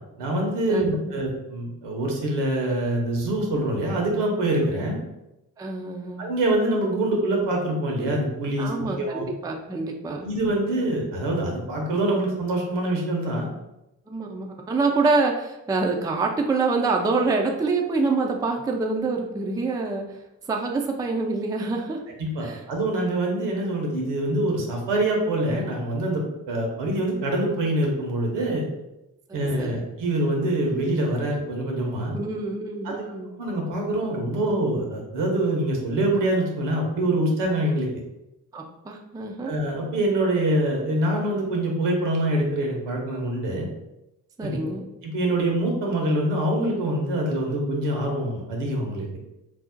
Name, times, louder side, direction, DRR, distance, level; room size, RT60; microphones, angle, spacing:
voice 1, 0.2-5.0 6.2-9.3 10.2-13.5 22.2-28.6 29.3-32.1 32.8-32.9 33.4-37.9 39.4-43.7 44.4-44.6 45.0-49.1, right 1 dB, 75° right, 0 dB, 0.9 m, -25 dB
voice 2, 5.6-6.2 8.6-10.3 14.1-20.1 20.5-22.0 22.4-22.6 29.3-29.9 32.1-33.3 38.5-39.5 44.4-44.8, right 3 dB, 10° right, 2 dB, 0.4 m, -26 dB
2.6 x 2.0 x 3.8 m, 0.91 s
hypercardioid pair, 45°, 43 cm